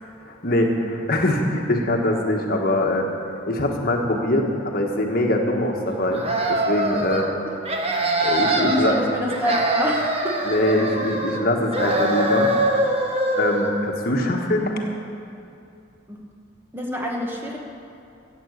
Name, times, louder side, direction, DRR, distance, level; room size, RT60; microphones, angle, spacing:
voice 1, 0.3-3.1 3.5-6.2 6.5-7.3 8.2-9.0 10.5-12.5 13.4-14.7, left 1 dB, 50° left, 1 dB, 1.4 m, -22 dB
sound 1, 6.1-7.3 7.6-9.0 9.3-11.4 11.7-13.7, right 1 dB, 30° right, 1.3 m, -23 dB
voice 2, 8.6-10.4 16.1-16.2 16.7-17.6, equal, 10° right, -1 dB, 1.4 m, -27 dB
14.0 x 8.2 x 8.1 m, 2.6 s
head